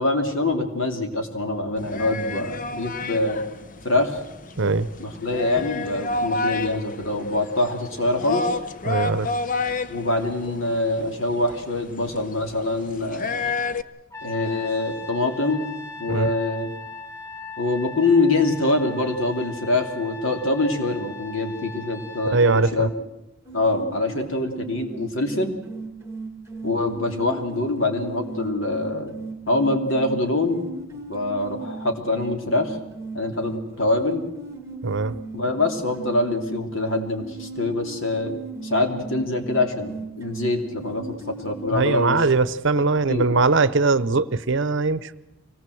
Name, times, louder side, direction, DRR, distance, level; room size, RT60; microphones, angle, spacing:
voice 1, 0.0-3.4 3.8-4.2 5.0-8.6 9.9-13.5 14.2-15.7 16.0-16.7 17.6-22.9 23.5-25.6 26.6-29.2 29.5-30.6 31.1-32.8 33.1-34.2 35.3-38.3 38.6-41.1 41.4-42.2 43.0-43.3, left 2 dB, 65° left, 4 dB, 3.0 m, -24 dB
sound 1, 1.8-13.8, left 3 dB, 40° left, 0.8 m, -30 dB
voice 2, 4.6-4.9 8.8-9.3 16.1-16.3 22.3-22.9 34.8-35.1 41.7-45.1, right 3 dB, 60° right, 16 dB, 0.8 m, -21 dB
Trumpet, 14.1-22.7, left 3 dB, 15° left, 0.9 m, -39 dB
sound 2, 23.4-42.0, right 3 dB, 15° right, 1.9 m, -37 dB
24.0 x 18.5 x 7.8 m, 0.93 s
head